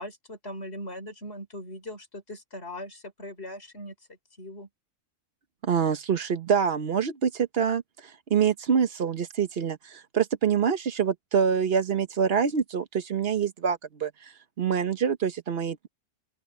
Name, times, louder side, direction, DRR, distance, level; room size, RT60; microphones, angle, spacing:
voice 1, 0.0-4.7, left 1 dB, 55° left, 5.6 m, -40 dB
voice 2, 5.6-14.3 14.6-15.9, right 7 dB, 55° right, 1.1 m, -26 dB
open air
omnidirectional pair, 1.3 m